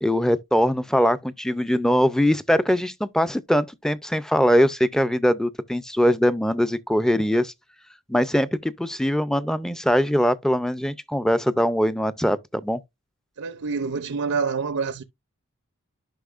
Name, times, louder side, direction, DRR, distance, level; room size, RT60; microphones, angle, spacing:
voice 1, 0.0-7.5 8.1-12.8, equal, ahead, 0.4 m, -22 dB
voice 2, 13.4-15.0, right 5 dB, 80° right, 0.6 m, -27 dB
11.5 x 5.5 x 2.4 m
head